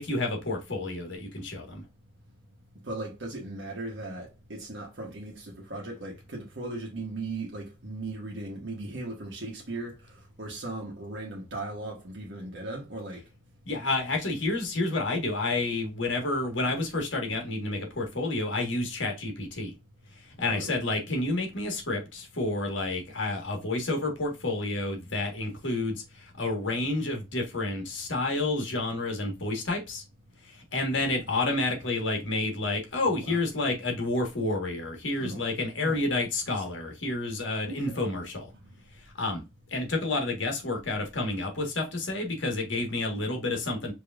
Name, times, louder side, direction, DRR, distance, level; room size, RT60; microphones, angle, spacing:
voice 1, 0.0-1.8 13.6-19.7 20.1-30.0 30.4-38.5 38.9-39.4 39.7-43.9, left 2 dB, 70° left, 1.5 m, -30 dB
voice 2, 2.9-9.9 10.4-13.2 20.5-20.7 33.1-33.4 35.2-35.4 35.8-36.0 36.5-36.6 37.7-38.1, right 2 dB, 65° right, 1.1 m, -38 dB
4.9 x 2.9 x 2.4 m
head